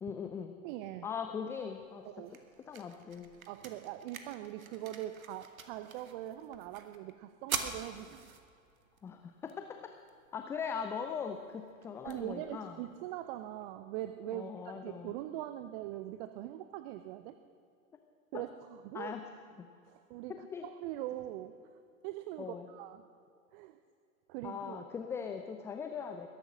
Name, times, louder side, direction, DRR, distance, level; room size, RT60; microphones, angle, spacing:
voice 1, 0.0-0.5 1.0-2.1 2.6-3.3 9.0-9.8 10.3-12.8 14.3-15.1 18.3-18.4 18.9-19.2 20.3-20.7 22.4-22.7 24.4-26.3, left 6 dB, 5° left, 6 dB, 0.3 m, -40 dB
voice 2, 0.6-1.1 2.0-2.3 3.5-8.4 12.0-17.4 18.3-19.1 19.9-21.8 22.0-23.0 23.5-23.8 24.3-24.8, right 13 dB, 40° right, 11 dB, 0.8 m, -42 dB
sound 1, 1.7-13.7, right 6 dB, 75° right, 1.5 m, -47 dB
21.0 x 11.0 x 6.1 m, 2.5 s
figure-of-eight pair, 90°, 42 cm